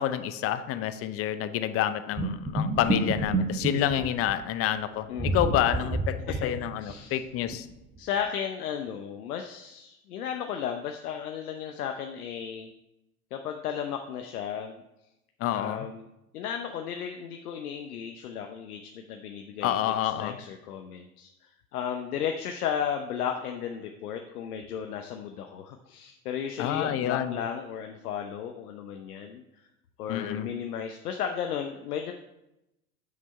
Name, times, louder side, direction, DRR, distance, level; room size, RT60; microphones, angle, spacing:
voice 1, 0.0-7.7 15.4-15.9 19.6-20.4 26.6-27.4 30.1-30.5, left 11 dB, 30° left, 12 dB, 0.6 m, -28 dB
sound 1, 2.1-4.4 5.2-7.1 7.5-7.6 8.0-8.1, right 2 dB, 15° right, 1.0 m, -29 dB
voice 2, 3.7-4.1 5.1-5.4 6.3-6.5 6.8-7.2 8.0-12.7 13.3-14.8 15.5-16.1 16.3-29.4 30.0-32.1, left 8 dB, 70° left, 5 dB, 0.9 m, -34 dB
7.3 x 6.2 x 5.4 m, 0.90 s
hypercardioid pair, 95°, 47 cm